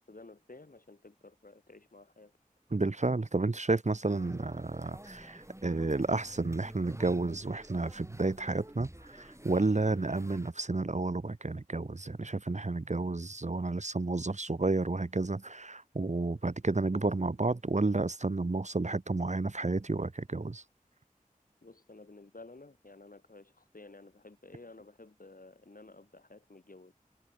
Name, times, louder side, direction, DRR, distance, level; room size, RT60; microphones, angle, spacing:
voice 1, 0.0-2.3 21.6-26.9, left 2 dB, 75° left, 4.4 m, -53 dB
voice 2, 2.7-20.6, right 3 dB, 55° right, 1.2 m, -31 dB
sound 1, 4.0-10.5, right 1 dB, 20° right, 5.5 m, -50 dB
wide cardioid pair, 50°, 15 cm